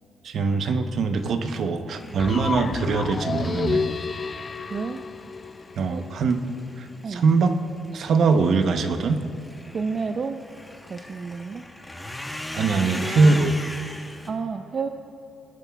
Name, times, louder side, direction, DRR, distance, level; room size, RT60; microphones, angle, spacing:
voice 1, 0.2-3.9 5.8-6.4 6.8-7.5 7.9-9.3 12.5-13.6, right 4 dB, 60° right, 7 dB, 0.8 m, -22 dB
sound 1, 1.9-14.3, left 1 dB, 10° left, 1.1 m, -40 dB
sound 2, 2.2-6.1, left 5 dB, 35° left, 0.3 m, -30 dB
voice 2, 4.7-5.0 5.9-6.0 7.0-7.2 9.7-10.4 10.9-11.7 14.3-14.9, right 5 dB, 45° right, 7 dB, 0.5 m, -30 dB
19.5 x 11.0 x 2.3 m, 2.9 s
cardioid pair, 90°, 0 cm